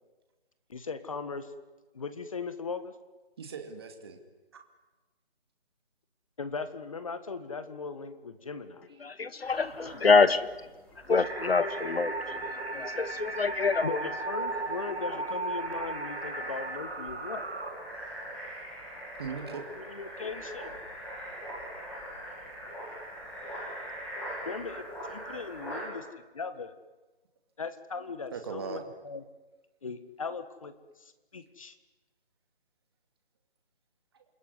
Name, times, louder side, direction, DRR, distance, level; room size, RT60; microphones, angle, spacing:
voice 1, 0.7-1.5 1.9-2.9 6.4-8.9 13.8-17.4 19.8-20.8 24.5-26.1 26.3-26.7 27.6-29.2 29.8-31.8, left 5 dB, 30° left, 11 dB, 1.7 m, -38 dB
voice 2, 3.4-4.2 4.5-4.6 19.2-19.6 23.9-24.0 25.8-25.9 28.3-28.8 34.1-34.2, right 5 dB, 25° right, 5 dB, 2.4 m, -39 dB
voice 3, 9.0-10.5 11.1-12.4 12.7-14.0, left 4 dB, 70° left, 13 dB, 1.9 m, -25 dB
sound 1, 9.4-25.9, equal, 5° left, 2.6 m, -42 dB
sound 2, 11.2-17.7, right 3 dB, 85° right, 5.5 m, -36 dB
28.5 x 21.5 x 9.7 m, 1.2 s
figure-of-eight pair, 170°, 32 cm